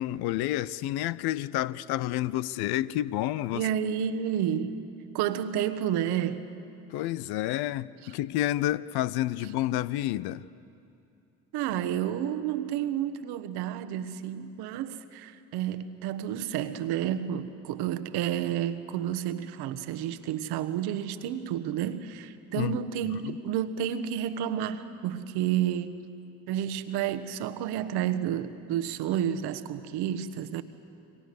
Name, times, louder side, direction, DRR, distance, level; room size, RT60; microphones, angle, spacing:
voice 1, 0.0-3.6 6.9-10.4 22.6-22.8 23.1-23.2, left 14 dB, 65° left, 0.7 m, -29 dB
voice 2, 3.5-4.8 5.1-6.5 8.0-8.1 11.5-26.0 26.5-30.6, right 10 dB, 65° right, 1.3 m, -30 dB
29.0 x 24.0 x 6.7 m
hypercardioid pair, 45°, 42 cm